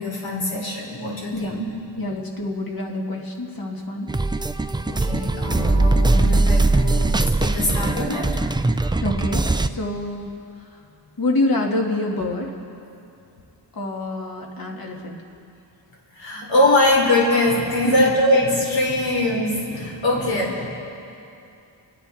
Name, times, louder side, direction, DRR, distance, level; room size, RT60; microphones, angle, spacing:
voice 1, 0.0-1.7 4.9-8.3 16.1-20.7, left 1 dB, 85° left, -2 dB, 3.5 m, -22 dB
voice 2, 2.0-4.1 9.0-9.4 9.7-10.3 11.2-12.5 13.8-15.2 17.8-18.1, left 2 dB, 50° left, 0 dB, 2.3 m, -26 dB
sound 1, 4.1-9.7, right 2 dB, 10° right, 0.4 m, -20 dB
28.5 x 9.9 x 4.2 m, 2.7 s
wide cardioid pair, 95°, 44 cm